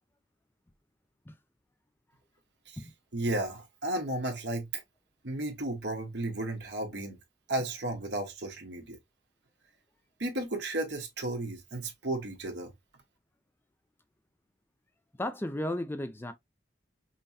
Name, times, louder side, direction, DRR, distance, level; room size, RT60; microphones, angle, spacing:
voice 1, 3.1-4.8 5.2-7.2 7.5-9.0 10.2-12.7, right 2 dB, 70° right, 1.3 m, -33 dB
voice 2, 15.1-16.3, left 1 dB, 10° left, 0.4 m, -34 dB
5.5 x 2.2 x 2.8 m
head